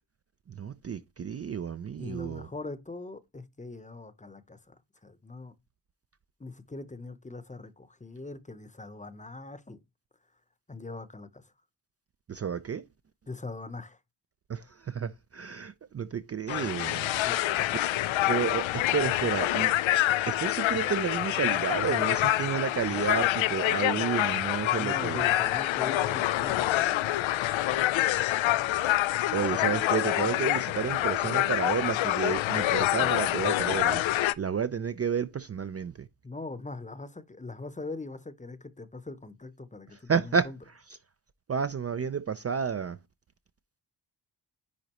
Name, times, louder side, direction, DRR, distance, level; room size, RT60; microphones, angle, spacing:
voice 1, 0.6-2.5 12.3-12.8 14.5-17.2 17.7-17.9 18.3-18.7 18.9-19.7 20.3-25.3 29.3-34.0 34.4-35.9 40.1-40.5 41.5-43.0, right 7 dB, 35° right, 0.5 m, -31 dB
voice 2, 2.0-4.7 5.0-5.5 6.4-9.8 10.7-11.5 13.3-14.0 17.2-17.7 24.8-27.2 36.2-40.6, left 3 dB, 15° left, 0.8 m, -42 dB
sound 1, 16.5-34.3, left 15 dB, 80° left, 0.5 m, -26 dB
10.0 x 4.0 x 3.0 m
cardioid pair, 70°, 46 cm